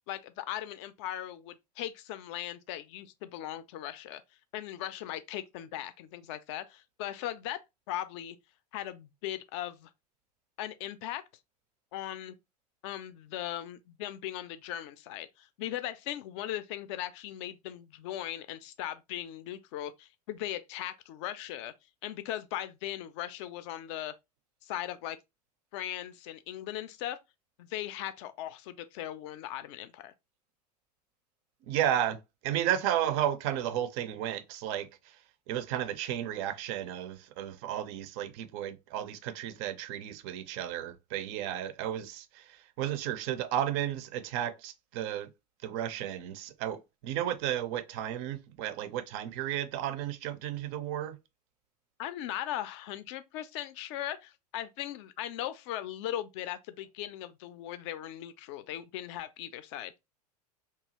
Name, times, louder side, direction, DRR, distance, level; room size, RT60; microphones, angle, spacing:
voice 1, 0.1-4.2 4.5-7.6 7.9-8.4 8.7-9.9 10.6-11.2 11.9-12.4 12.8-21.7 22.0-24.1 24.6-25.2 25.7-27.2 27.6-30.1 52.0-59.9, left 12 dB, 45° left, 0.4 m, -38 dB
voice 2, 31.7-35.2 35.5-45.3 45.6-51.2, right 11 dB, 40° right, 0.4 m, -33 dB
2.8 x 2.3 x 2.8 m
figure-of-eight pair, 85°, 21 cm